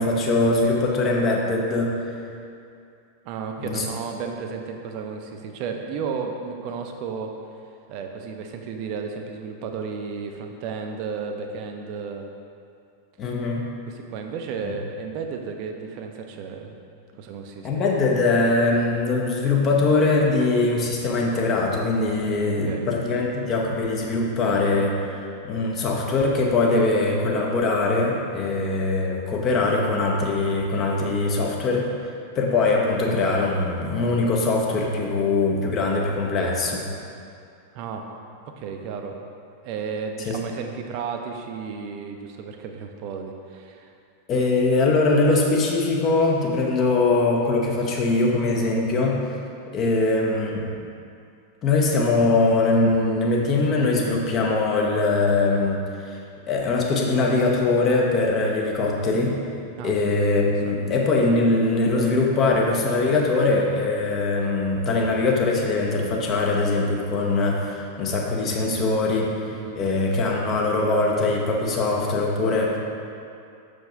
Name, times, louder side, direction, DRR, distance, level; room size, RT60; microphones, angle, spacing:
voice 1, 0.0-1.9 3.6-3.8 13.2-13.6 17.6-31.9 32.3-36.8 40.3-40.4 44.3-49.3 49.7-50.7 51.6-56.2 56.5-59.4 59.8-69.3 69.7-72.8, left 3 dB, 30° left, -1 dB, 0.9 m, -22 dB
voice 2, 3.2-7.3 7.9-12.2 13.9-16.8 17.2-17.7 22.4-22.9 37.7-38.0 38.6-39.2 39.6-43.9 49.8-49.9 59.8-60.0 60.5-60.8 69.5-69.8, right 5 dB, 45° right, 4 dB, 0.6 m, -33 dB
6.0 x 5.1 x 3.7 m, 2.5 s
figure-of-eight pair, 90°, 0 cm